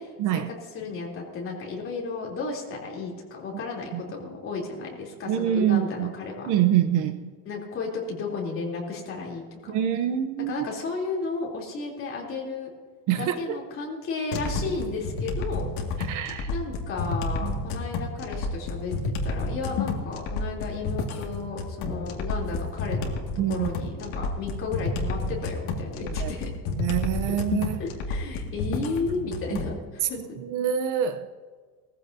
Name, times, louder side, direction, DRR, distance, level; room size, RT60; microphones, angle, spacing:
voice 1, 0.0-6.5 7.4-9.8 10.5-12.7 13.2-15.7 16.5-18.9 19.2-23.2 23.5-26.5 27.8-30.2, left 4 dB, 30° left, -2 dB, 3.3 m, -33 dB
voice 2, 5.3-6.1 6.5-7.3 9.7-10.5 13.1-13.6 16.1-16.5 17.4-17.5 23.4-23.7 26.2-26.3 26.8-27.8 30.0-30.1 30.4-31.3, right 10 dB, 45° right, 7 dB, 0.8 m, -25 dB
sound 1, 14.3-29.7, left 3 dB, 50° left, 2.1 m, -30 dB
20.0 x 14.5 x 2.7 m, 1.5 s
cardioid pair, 160°, 42 cm